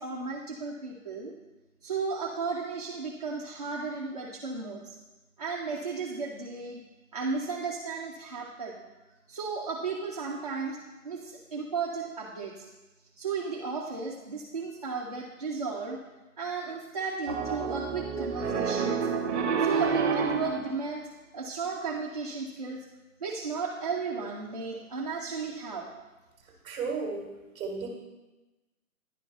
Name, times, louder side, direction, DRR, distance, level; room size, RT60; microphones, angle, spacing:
voice 1, 0.0-1.3 1.8-5.0 5.4-6.8 7.1-8.8 9.3-10.8 11.0-12.7 13.2-16.0 16.4-19.1 19.6-21.0 21.3-22.8 23.2-25.9, right 4 dB, 30° right, -4 dB, 0.4 m, -34 dB
Piano, 17.3-20.7, right 5 dB, 50° right, 0.8 m, -28 dB
voice 2, 26.6-27.3 27.5-27.9, right 4 dB, 15° right, 1 dB, 1.3 m, -33 dB
10.5 x 4.3 x 3.9 m, 1.1 s
hypercardioid pair, 160°, 44 cm